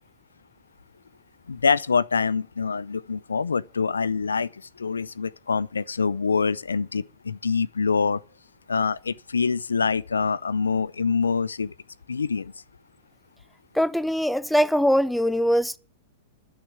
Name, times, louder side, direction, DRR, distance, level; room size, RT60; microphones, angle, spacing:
voice 1, 1.5-4.5 4.8-8.2 8.7-11.7 12.1-12.5, left 5 dB, 85° left, 0.5 m, -25 dB
voice 2, 13.7-15.8, equal, ahead, 0.6 m, -22 dB
11.5 x 6.6 x 8.6 m
hypercardioid pair, 105°, 0 cm